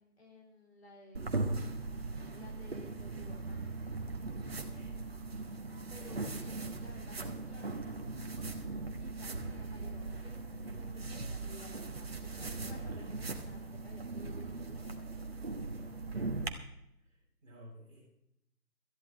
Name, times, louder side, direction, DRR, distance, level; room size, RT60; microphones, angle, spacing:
voice 1, 0.0-1.5 2.3-3.6 5.9-16.1, left 2 dB, 45° left, 1 dB, 3.7 m, -56 dB
sound 1, 1.1-16.5, right 3 dB, 40° right, 1.3 m, -39 dB
voice 2, 4.5-5.0 10.9-11.3 12.3-13.1 17.0-18.0, equal, 5° right, -12 dB, 6.9 m, -53 dB
19.0 x 13.5 x 3.2 m, 0.78 s
figure-of-eight pair, 165°, 46 cm